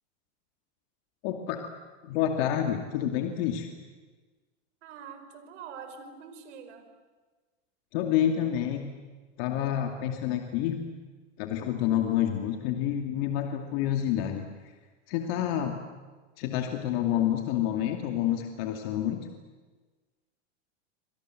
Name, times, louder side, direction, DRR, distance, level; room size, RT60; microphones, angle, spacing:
voice 1, 1.2-1.6 2.0-3.7 7.9-8.9 9.4-10.8 11.4-14.5 15.1-15.8 16.4-19.2, left 10 dB, 55° left, 4 dB, 2.6 m, -28 dB
voice 2, 4.8-6.9, right 6 dB, 75° right, 7 dB, 5.3 m, -45 dB
29.5 x 25.5 x 7.8 m, 1.3 s
supercardioid pair, 140°, 36 cm